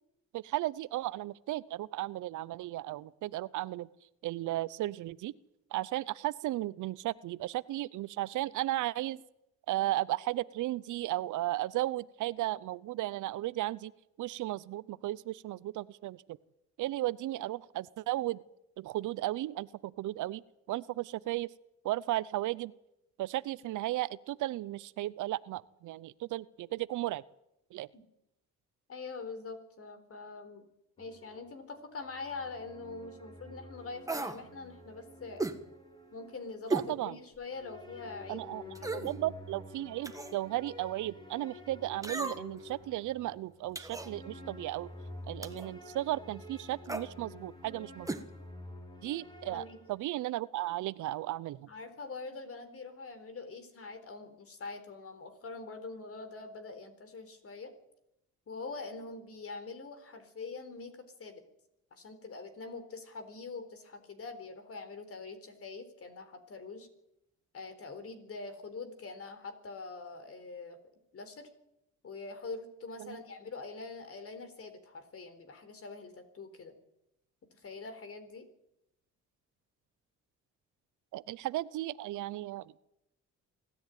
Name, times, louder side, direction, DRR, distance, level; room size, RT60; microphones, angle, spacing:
voice 1, 0.3-3.9 4.2-5.3 5.7-9.2 9.7-13.9 14.2-16.2 16.8-18.4 18.8-20.4 20.7-21.5 21.8-22.7 23.2-27.2 27.7-27.9 36.7-37.1 38.3-38.6 38.9-44.9 45.3-48.1 49.0-51.7 73.0-73.2 81.1-82.8, right 15 dB, 80° right, 20 dB, 0.7 m, -35 dB
voice 2, 28.9-30.6 31.0-35.4 36.1-38.5 38.8-39.2 49.5-49.8 51.7-57.7 58.5-61.4 61.9-66.9 67.5-70.8 71.1-71.5 72.0-76.7 77.5-78.5, left 3 dB, 50° left, 9 dB, 4.1 m, -44 dB
sound 1, 31.0-36.9 37.5-50.0, left 2 dB, 15° left, 4.8 m, -50 dB
sound 2, 34.1-34.4 35.4-35.6 36.7-36.9 37.4-37.5 38.7-39.1 40.0-40.4 42.0-42.6 43.7-44.1 45.4-45.7 46.8-47.1 48.0-48.2 48.5-48.6, right 2 dB, 10° right, 1.7 m, -35 dB
25.0 x 13.5 x 9.2 m, 0.85 s
cardioid pair, 90°, 30 cm